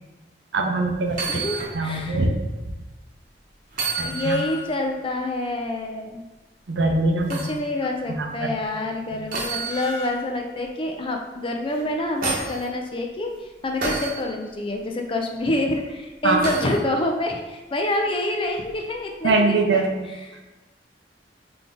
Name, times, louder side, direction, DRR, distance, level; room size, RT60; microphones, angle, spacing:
voice 1, 0.5-1.4 1.7-2.5 4.0-4.4 6.7-7.5 8.2-8.5 9.1-9.2 16.2-16.4 19.2-20.1, right 2 dB, 75° right, 4 dB, 0.6 m, -23 dB
sound 1, 1.1-1.8 2.2-2.3 3.7-4.7 7.3-7.6 9.3-10.3 11.7-12.6 13.8-14.2 16.4-16.8 18.6-18.7, right 3 dB, 50° right, 1.0 m, -29 dB
voice 2, 1.3-2.2 4.0-6.2 7.3-19.8 20.3-20.4, left 1 dB, 30° left, 3 dB, 0.5 m, -27 dB
4.0 x 3.3 x 3.5 m, 1.1 s
head